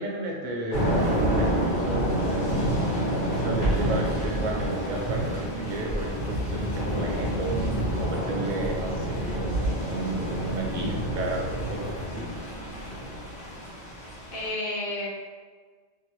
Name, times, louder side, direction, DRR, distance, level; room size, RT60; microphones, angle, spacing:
voice 1, 0.0-2.5 3.0-12.3, right 1 dB, 55° right, -1 dB, 0.6 m, -33 dB
Thunder / Rain, 0.7-14.5, right 1 dB, 85° left, 1.4 m, -28 dB
Walk footsteps, 1.4-2.9 3.2-5.4 5.8-9.9 10.2-10.3, right 2 dB, 25° left, 0.8 m, -38 dB
voice 2, 14.0-15.1, left 2 dB, 60° left, -6 dB, 1.0 m, -32 dB
2.9 x 2.1 x 3.0 m, 1.5 s
omnidirectional pair, 1.2 m